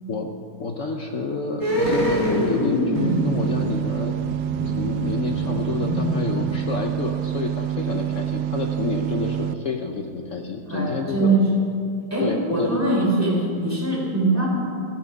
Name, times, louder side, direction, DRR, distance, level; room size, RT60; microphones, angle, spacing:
voice 1, 0.6-4.1 4.8-11.4 12.2-12.8, left 4 dB, 65° left, 3 dB, 0.8 m, -29 dB
sound 1, 1.6-7.0 7.3-7.4, left 1 dB, 10° left, 2.5 m, -25 dB
sound 2, 2.9-9.5, right 11 dB, 70° right, 1.0 m, -27 dB
voice 2, 10.7-11.5 12.1-14.5, right 2 dB, 5° right, -5 dB, 3.7 m, -22 dB
14.5 x 12.5 x 5.3 m, 2.5 s
omnidirectional pair, 2.3 m